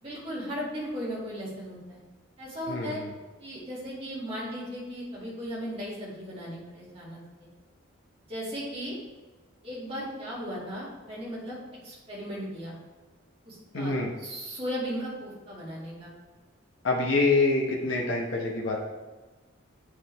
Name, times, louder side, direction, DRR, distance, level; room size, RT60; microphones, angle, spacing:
voice 1, 0.0-2.0 2.4-3.0 3.4-7.5 8.3-9.0 9.6-11.6 11.8-12.8 13.4-16.1, equal, 30° right, -7 dB, 2.3 m, -36 dB
voice 2, 2.7-3.0 13.7-14.1 16.8-18.8, left 3 dB, 70° left, -1 dB, 1.0 m, -25 dB
8.1 x 4.9 x 3.5 m, 1.2 s
head